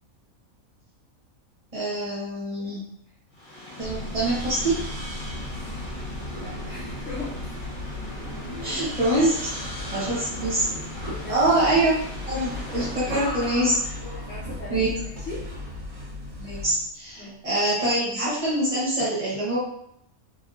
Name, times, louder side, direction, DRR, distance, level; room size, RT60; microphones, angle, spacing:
voice 1, 1.7-2.8 3.8-4.8 8.6-9.7 9.9-10.6 11.3-11.9 12.3-13.7 14.7-14.9 16.4-19.6, right 1 dB, 35° right, -9 dB, 0.6 m, -24 dB
sound 1, 3.3-13.4, left 1 dB, 40° left, 1.2 m, -39 dB
sound 2, 3.8-18.3 18.6-18.7, equal, 90° left, 0.3 m, -41 dB
sound 3, 5.2-16.9, left 1 dB, 65° right, 1.2 m, -37 dB
voice 2, 5.7-7.4 9.9-10.3 11.1-11.4 13.0-13.2 14.0-15.5 17.2-17.5, left 1 dB, 60° left, -5 dB, 0.8 m, -40 dB
3.3 x 2.6 x 2.4 m, 0.71 s
omnidirectional pair, 1.5 m